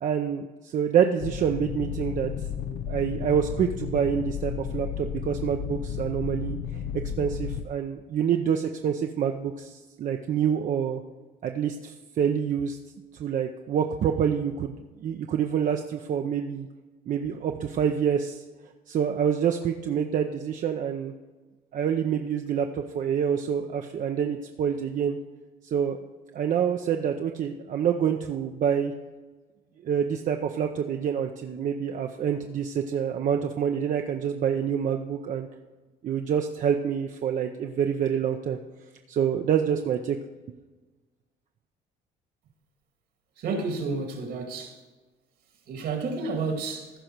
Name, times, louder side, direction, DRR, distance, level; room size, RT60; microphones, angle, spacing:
voice 1, 0.0-2.3 2.7-6.8 7.2-11.0 11.4-12.8 13.2-14.7 15.0-16.7 17.1-18.4 18.9-21.1 21.7-25.2 25.6-26.0 26.3-28.9 29.8-35.5 36.0-38.6 39.1-40.2, right 8 dB, 50° right, 0.6 m, -27 dB
sound 1, 1.2-7.7, left 8 dB, 80° left, 0.6 m, -33 dB
voice 2, 43.4-44.8 45.7-46.9, right 4 dB, 70° right, 2.2 m, -30 dB
15.0 x 5.3 x 4.6 m
cardioid pair, 110°, 17 cm